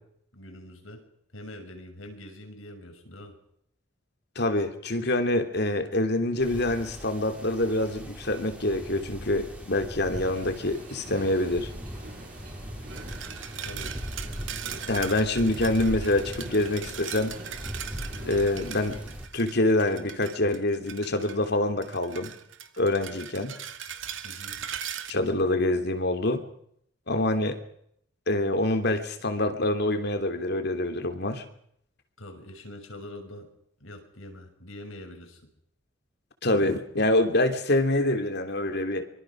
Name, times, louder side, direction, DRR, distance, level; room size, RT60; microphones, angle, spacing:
voice 1, 0.3-1.0 1.3-3.4 13.6-13.9 24.2-24.6 32.2-33.5 33.8-35.4, left 1 dB, 85° left, 5 dB, 6.3 m, -44 dB
voice 2, 4.3-11.7 14.9-17.3 18.2-19.0 19.3-22.3 22.8-23.5 25.1-26.4 27.1-27.6 28.3-31.4 36.4-39.0, left 1 dB, 55° left, 7 dB, 3.1 m, -26 dB
sound 1, 6.4-19.3, equal, 5° right, 3.8 m, -40 dB
sound 2, 10.1-19.0, right 1 dB, 45° right, 7.2 m, -46 dB
sound 3, 12.9-21.5 21.8-25.1, right 9 dB, 70° right, 2.4 m, -40 dB
25.0 x 24.0 x 6.3 m, 0.69 s
head